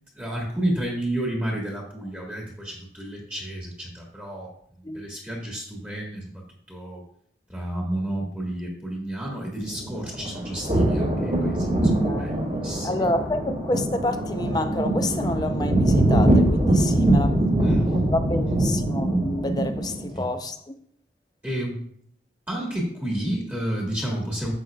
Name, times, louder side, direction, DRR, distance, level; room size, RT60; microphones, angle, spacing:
voice 1, 0.2-4.5 4.9-6.3 6.7-7.0 7.5-13.1 17.6-17.9 18.4-18.6 20.1-20.3 21.4-21.8 22.5-24.5, right 1 dB, 10° right, 1.7 m, -31 dB
sound 1, 9.7-20.1, right 1 dB, 45° right, 2.3 m, -23 dB
voice 2, 12.8-20.6, left 2 dB, 25° left, 0.6 m, -29 dB
10.0 x 7.9 x 2.4 m
head